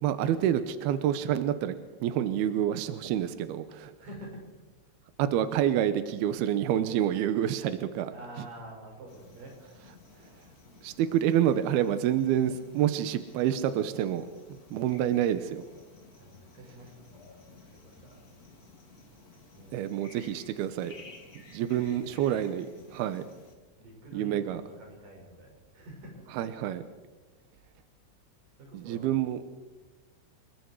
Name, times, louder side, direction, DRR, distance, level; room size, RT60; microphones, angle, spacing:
voice 1, 0.0-1.7 2.0-3.9 5.2-8.1 10.8-14.3 14.7-15.6 19.7-20.9 21.5-23.2 24.1-24.6 26.4-26.8 28.7-29.4, right 10 dB, 80° right, 10 dB, 2.4 m, -28 dB
voice 2, 4.0-4.5 8.1-9.5 15.6-15.7 16.2-18.2 19.5-19.9 21.6-22.1 23.8-26.2 28.6-29.2, right 1 dB, 45° right, 0 dB, 7.7 m, -48 dB
sound 1, 9.1-23.5, left 3 dB, 25° left, 2.2 m, -54 dB
28.0 x 22.0 x 4.8 m, 1.2 s
omnidirectional pair, 5.6 m